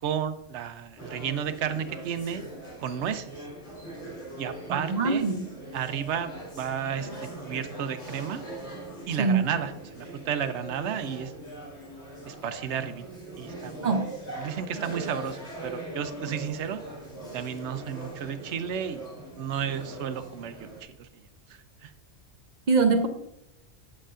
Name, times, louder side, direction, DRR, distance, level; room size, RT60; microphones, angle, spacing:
voice 1, 0.0-2.4 2.8-3.5 4.4-5.2 5.7-8.4 9.1-11.3 12.3-13.0 13.4-13.9 14.4-16.8 17.3-19.1 19.3-21.1 21.5-21.9, right 8 dB, 75° right, 10 dB, 0.9 m, -32 dB
sound 1, 1.0-20.8, right 1 dB, 70° left, 2.6 m, -41 dB
voice 2, 4.7-5.4 9.2-9.5 13.8-14.1 22.7-23.1, right 4 dB, 45° right, 7 dB, 0.7 m, -23 dB
8.3 x 7.8 x 2.5 m, 0.81 s
omnidirectional pair, 1.2 m